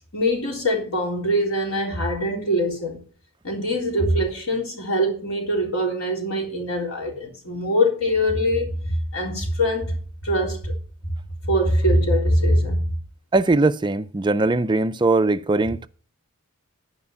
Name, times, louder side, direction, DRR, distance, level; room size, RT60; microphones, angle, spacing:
voice 1, 0.1-3.0 3.4-10.0 10.2-10.7 11.4-12.9, equal, 70° left, 3.7 m, -23 dB
voice 2, 13.3-15.9, right 2 dB, 20° right, 0.4 m, -20 dB
12.0 x 5.2 x 7.0 m
head